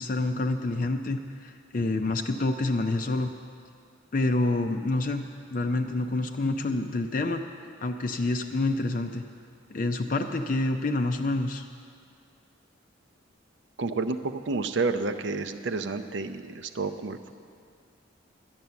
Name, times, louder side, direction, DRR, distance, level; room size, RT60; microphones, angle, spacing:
voice 1, 0.0-3.3 4.1-9.2 9.7-11.7, left 2 dB, 45° left, 5 dB, 0.4 m, -28 dB
voice 2, 13.8-17.3, right 3 dB, 70° right, 9 dB, 0.6 m, -30 dB
10.5 x 10.5 x 7.0 m, 2.3 s
head